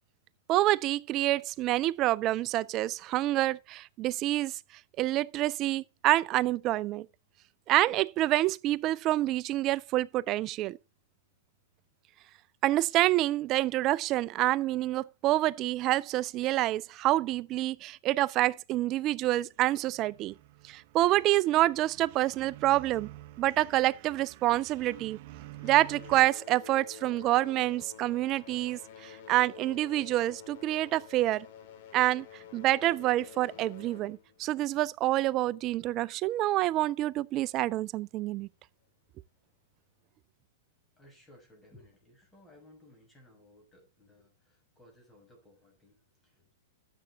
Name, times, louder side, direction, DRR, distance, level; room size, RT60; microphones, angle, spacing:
voice 1, 0.5-4.6 5.0-7.1 7.7-10.8 12.6-20.3 20.6-23.1 23.4-25.2 25.6-31.5 31.9-32.3 32.5-38.5, right 15 dB, 35° right, 0.5 m, -27 dB
sound 1, 19.5-26.3, right 16 dB, 50° right, 0.9 m, -49 dB
sound 2, 23.8-25.1 25.4-35.7 36.6-36.7 37.4-37.5 38.1-38.2, left 8 dB, 55° left, 3.9 m, -50 dB
voice 2, 40.9-46.5, left 1 dB, 10° left, 6.7 m, -59 dB
12.5 x 8.1 x 3.5 m
hypercardioid pair, 125°, 0 cm